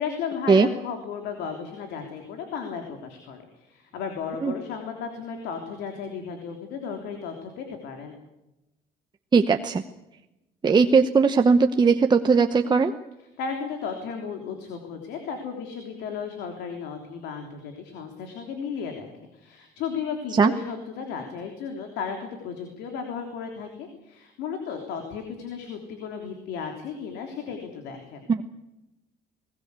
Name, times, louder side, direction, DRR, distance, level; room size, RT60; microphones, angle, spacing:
voice 1, 0.0-8.2 13.4-19.1 19.3-28.2, left 6 dB, 90° left, 4 dB, 3.4 m, -34 dB
voice 2, 9.3-9.8 10.6-12.9 20.3-20.5 28.3-28.4, right 5 dB, 25° right, 6 dB, 1.0 m, -19 dB
21.0 x 19.5 x 8.3 m, 0.95 s
cardioid pair, 110°, 17 cm